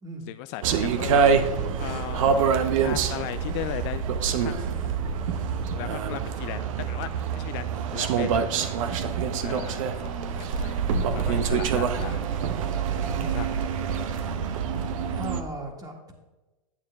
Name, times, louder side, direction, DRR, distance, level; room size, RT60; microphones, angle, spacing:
voice 1, 0.3-2.5 2.8-4.9 5.7-7.6 7.9-8.6 9.4-10.8 11.1-12.2 13.3-13.6, left 14 dB, 45° left, 11 dB, 0.4 m, -37 dB
sound 1, 0.6-15.4, right 6 dB, 65° right, 0.9 m, -26 dB
voice 2, 13.0-13.4 15.1-16.1, right 1 dB, 20° right, 3 dB, 1.9 m, -38 dB
9.5 x 7.5 x 3.5 m, 1.1 s
hypercardioid pair, 110°, 18 cm